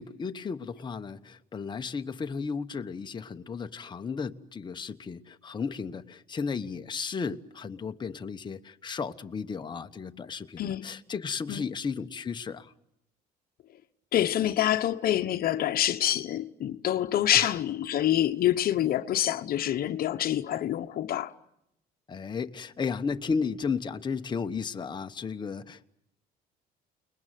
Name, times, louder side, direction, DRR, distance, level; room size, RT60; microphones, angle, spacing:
voice 1, 0.0-12.7 17.3-17.5 22.1-25.9, left 5 dB, 25° left, 1.1 m, -34 dB
voice 2, 14.1-21.3, left 12 dB, 60° left, 1.0 m, -26 dB
29.5 x 21.0 x 9.2 m
cardioid pair, 110°, 17 cm